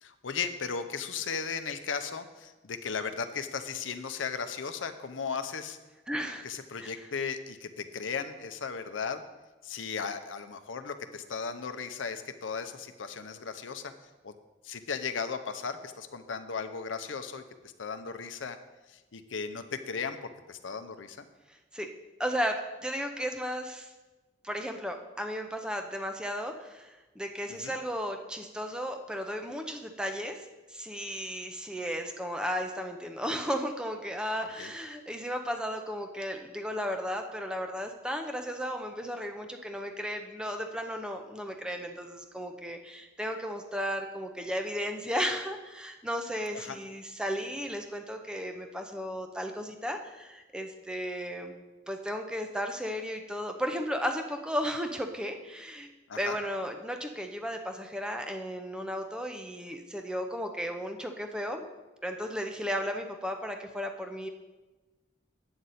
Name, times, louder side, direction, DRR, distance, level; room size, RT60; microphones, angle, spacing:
voice 1, 0.0-5.8 6.4-9.2 9.6-13.9 14.2-14.3 14.6-18.6 18.9-20.2 20.5-21.3 27.5-27.8 34.4-34.7 46.5-46.8 56.1-56.4, left 5 dB, 90° left, 9 dB, 0.6 m, -36 dB
voice 2, 6.1-6.4 6.8-6.9 21.7-21.9 22.2-23.9 24.4-51.5 51.9-55.9 56.2-61.6 62.0-64.3, equal, 5° right, 5 dB, 0.6 m, -34 dB
8.8 x 7.9 x 4.1 m, 1.1 s
head